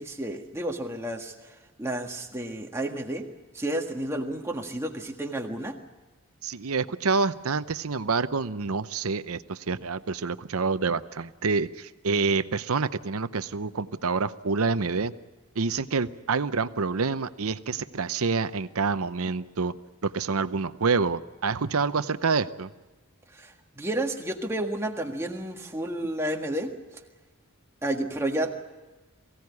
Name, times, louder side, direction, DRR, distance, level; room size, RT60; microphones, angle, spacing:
voice 1, 0.0-3.3 3.5-5.8 23.3-26.7 27.8-28.5, right 1 dB, 10° right, 2 dB, 1.7 m, -31 dB
voice 2, 6.4-15.1 15.6-19.7 20.0-22.7, right 4 dB, 75° right, 13 dB, 0.8 m, -27 dB
23.0 x 16.5 x 9.6 m, 1.2 s
head